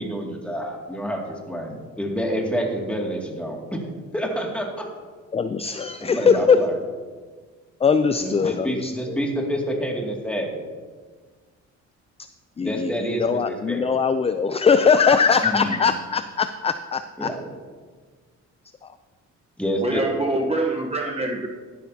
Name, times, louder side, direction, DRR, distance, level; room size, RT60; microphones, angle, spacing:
voice 1, 0.0-3.8 4.1-4.9 6.0-6.8 8.2-10.6 12.6-13.4 13.7-13.8 15.4-15.8 17.2-17.4 19.6-20.0, equal, 5° left, 0 dB, 2.3 m, -28 dB
voice 2, 5.3-6.6 7.8-9.2 12.6-17.3 18.8-18.9, left 5 dB, 20° left, 10 dB, 0.4 m, -21 dB
voice 3, 19.8-21.5, right 2 dB, 20° right, 1 dB, 0.9 m, -25 dB
13.0 x 11.5 x 2.8 m, 1.5 s
cardioid pair, 90°, 30 cm